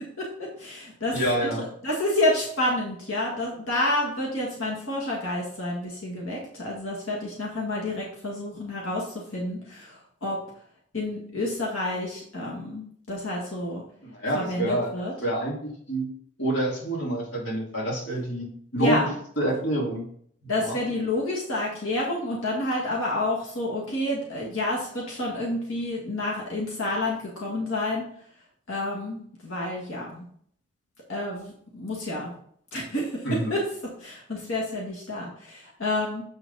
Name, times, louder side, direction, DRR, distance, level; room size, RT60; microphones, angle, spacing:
voice 1, 0.2-10.4 10.9-13.8 14.3-15.1 18.8-19.0 20.5-28.1 28.7-30.2 31.1-32.3 32.7-33.2 33.5-33.6 34.0-36.2, left 1 dB, 85° left, -3 dB, 1.9 m, -29 dB
voice 2, 1.1-1.6 14.0-14.9 15.2-16.1 16.4-19.1 19.4-20.1 20.4-20.8 33.2-33.6, right 1 dB, 60° left, -3 dB, 2.5 m, -27 dB
7.6 x 6.0 x 4.0 m, 0.62 s
head